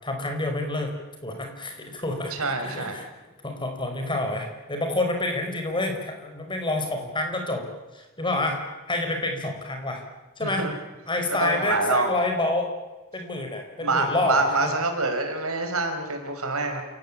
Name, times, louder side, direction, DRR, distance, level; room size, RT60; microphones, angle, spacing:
voice 1, 0.0-0.9 1.2-3.1 3.4-8.6 8.9-10.0 10.4-10.7 11.1-12.7 13.1-14.7, left 2 dB, 20° left, 4 dB, 5.0 m, -28 dB
voice 2, 2.3-3.0 10.4-10.7 11.4-12.1 13.8-16.8, right 3 dB, 75° right, 5 dB, 5.5 m, -26 dB
28.5 x 18.0 x 8.9 m, 1.1 s
head